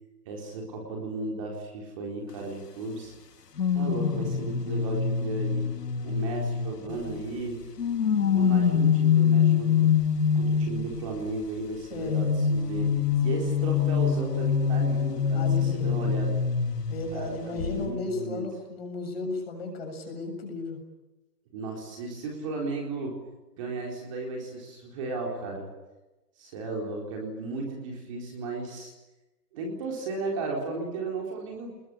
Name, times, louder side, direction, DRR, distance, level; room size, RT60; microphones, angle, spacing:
voice 1, 0.3-3.1 3.7-5.7 6.0-7.6 8.1-9.9 10.3-16.4 17.1-18.4 21.5-23.2 23.6-25.7 26.4-28.9 29.5-31.7, right 3 dB, 20° right, 0 dB, 4.0 m, -35 dB
sound 1, 3.6-7.2 7.8-11.0 12.1-17.3 17.6-17.9, left 7 dB, 75° left, 2.4 m, -25 dB
voice 2, 11.9-12.4 15.3-16.0 16.9-20.8, left 3 dB, 40° left, 3 dB, 7.2 m, -35 dB
29.0 x 21.0 x 8.7 m, 1.1 s
hypercardioid pair, 175°, 48 cm